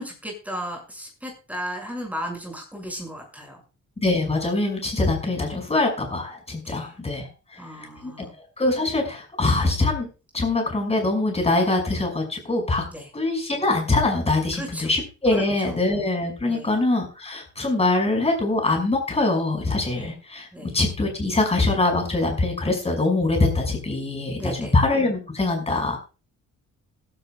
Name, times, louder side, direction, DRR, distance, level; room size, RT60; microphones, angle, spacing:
voice 1, 0.0-3.6 6.6-6.9 7.6-8.3 12.9-13.1 14.5-14.9 15.3-15.7 16.5-16.8 20.0-20.1 20.5-20.7 24.4-24.7, equal, 5° right, 1 dB, 6.3 m, -35 dB
voice 2, 4.0-8.3 8.6-10.1 10.3-12.8 13.1-26.0, left 2 dB, 20° left, 2 dB, 6.0 m, -23 dB
21.0 x 12.5 x 2.4 m, 0.32 s
wide cardioid pair, 155°, 32 cm